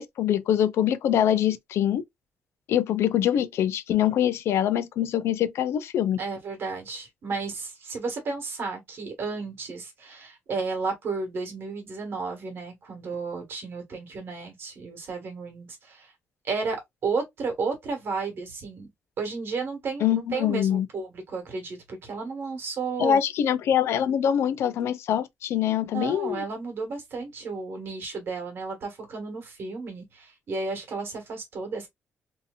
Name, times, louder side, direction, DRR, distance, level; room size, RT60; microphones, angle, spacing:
voice 1, 0.0-2.0 2.7-6.2 20.0-20.9 23.0-26.4, left 10 dB, 80° left, 0.4 m, -24 dB
voice 2, 6.2-16.1 16.4-18.9 19.2-23.2 25.9-31.9, right 4 dB, 60° right, 1.3 m, -33 dB
2.8 x 2.7 x 2.3 m
cardioid pair, 110°, 4 cm